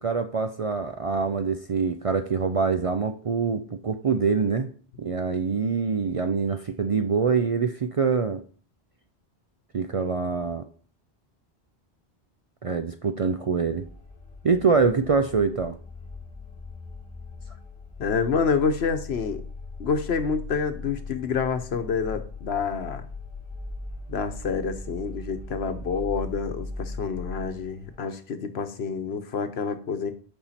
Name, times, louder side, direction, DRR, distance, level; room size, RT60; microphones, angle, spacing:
voice 1, 0.0-4.7 5.0-8.4 9.7-10.7 12.6-13.8 14.4-15.8, right 5 dB, 45° right, 8 dB, 0.4 m, -25 dB
sound 1, 13.7-28.0, left 3 dB, 35° left, 1.9 m, -39 dB
voice 2, 18.0-19.4 19.8-23.0 24.1-30.1, left 5 dB, 75° left, 9 dB, 1.1 m, -28 dB
8.7 x 5.5 x 4.2 m, 0.42 s
omnidirectional pair, 1.1 m